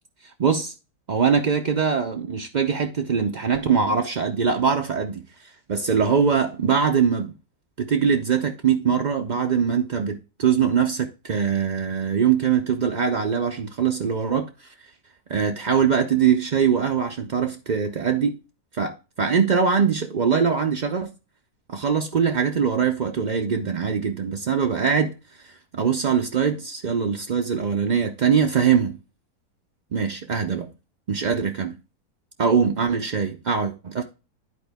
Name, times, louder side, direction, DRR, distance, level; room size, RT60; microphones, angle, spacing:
voice 1, 0.4-0.7 1.1-5.2 5.7-7.3 7.8-14.5 15.3-18.4 18.8-21.1 21.7-25.1 25.4-28.9 29.9-30.7 31.1-31.8 32.4-34.0, right 6 dB, 60° right, 0.4 m, -22 dB
11.0 x 4.5 x 3.4 m
omnidirectional pair, 1.7 m